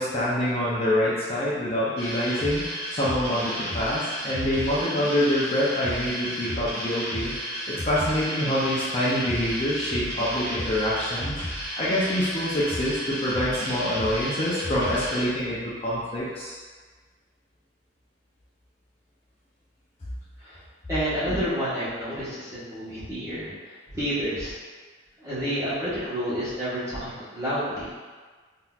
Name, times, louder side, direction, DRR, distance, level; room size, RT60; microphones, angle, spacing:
voice 1, 0.0-7.3 7.7-11.3 11.8-15.6 15.8-16.6, left 1 dB, 30° left, -8 dB, 0.5 m, -26 dB
sound 1, 2.0-15.2, equal, 60° right, 1.0 m, -33 dB
voice 2, 20.9-23.5 23.9-24.5 25.2-27.9, equal, 15° right, -12 dB, 1.2 m, -29 dB
3.8 x 2.7 x 2.3 m, 1.4 s
head